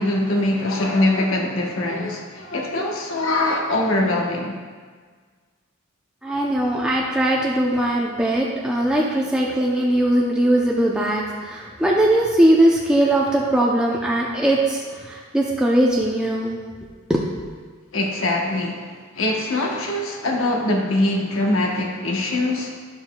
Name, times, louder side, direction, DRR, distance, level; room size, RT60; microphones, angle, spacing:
voice 1, 0.0-4.5 17.9-18.8 19.1-22.7, left 1 dB, 65° left, 0 dB, 0.9 m, -22 dB
voice 2, 6.2-14.8 15.1-16.6 17.1-17.2, right 1 dB, 5° right, -4 dB, 0.5 m, -20 dB
10.5 x 7.0 x 2.2 m, 1.5 s
head